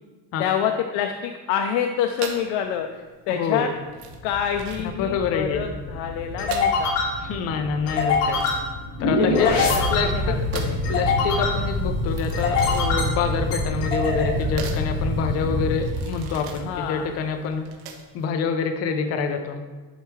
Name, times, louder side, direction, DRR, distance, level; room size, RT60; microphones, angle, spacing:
voice 1, 0.4-3.7 4.2-7.0 9.0-9.8 10.1-10.8 16.6-17.1, left 9 dB, 80° left, 5 dB, 0.6 m, -27 dB
sound 1, 2.1-18.3, right 6 dB, 60° right, 1.0 m, -41 dB
voice 2, 3.3-3.7 5.0-5.6 7.2-8.4 9.0-9.5 9.9-10.1 10.9-17.7 18.1-19.6, left 6 dB, 35° left, 6 dB, 0.5 m, -26 dB
sound 2, 4.1-16.8, left 2 dB, 60° left, 2.2 m, -25 dB
10.5 x 4.5 x 3.2 m, 1.3 s
cardioid pair, 165°, 43 cm